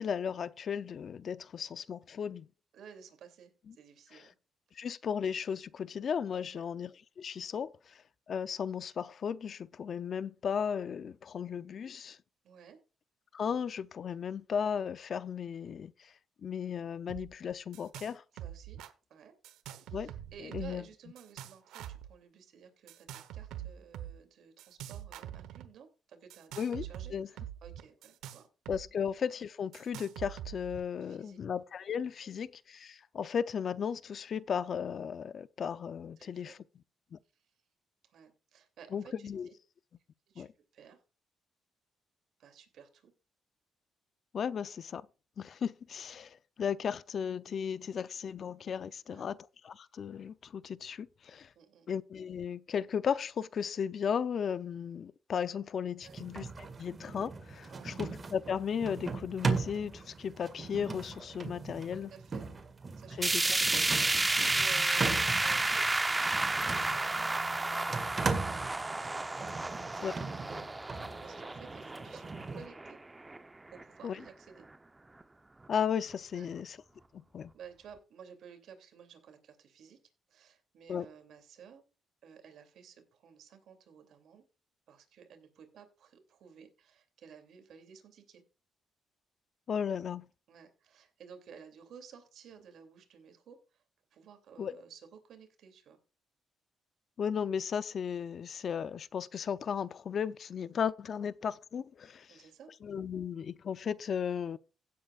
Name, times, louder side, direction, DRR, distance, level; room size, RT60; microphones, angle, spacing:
voice 1, 0.0-2.5 4.8-6.9 7.2-7.7 8.3-12.2 13.3-16.1 16.4-18.2 19.9-20.1 20.5-20.8 26.6-26.8 27.1-27.3 28.7-36.6 37.1-37.2 38.9-39.5 40.4-40.5 44.3-45.0 45.4-49.4 49.6-51.5 51.9-62.1 63.2-63.6 64.4-64.5 70.0-70.1 74.0-74.2 75.7-76.8 77.3-77.5 80.9-81.1 89.7-90.3 94.6-94.7 97.2-102.4 102.8-104.6, left 7 dB, 55° left, 0.5 m, -35 dB
voice 2, 2.7-4.3 6.5-6.6 12.4-12.8 18.3-18.8 19.1-19.3 19.8-28.5 28.8-28.9 31.0-31.4 32.2-32.4 36.2-36.6 38.0-39.5 40.3-40.5 40.7-41.0 42.4-43.1 49.1-49.3 51.5-51.9 56.0-56.2 57.7-57.9 61.9-62.5 62.9-63.6 64.1-69.2 69.6-73.0 73.7-74.7 76.3-76.5 77.5-80.0 80.3-81.8 82.2-84.4 84.9-88.4 90.5-93.8 94.1-96.0 102.3-102.7, right 7 dB, 70° right, 2.8 m, -54 dB
sound 1, 17.1-17.3 17.5-18.1 18.4-18.9 19.4-20.8 21.2-22.1 22.9-24.1 24.6-25.7 26.3-28.8 29.1-29.2 29.7-30.8, right 11 dB, 90° right, 1.0 m, -44 dB
sound 2, 56.0-72.7, right 4 dB, 35° right, 2.0 m, -39 dB
sound 3, 63.2-73.4 73.8-73.9 74.3-74.4 75.2-75.3, right 2 dB, 20° right, 0.8 m, -31 dB
16.5 x 8.3 x 2.4 m
cardioid pair, 90°, 0 cm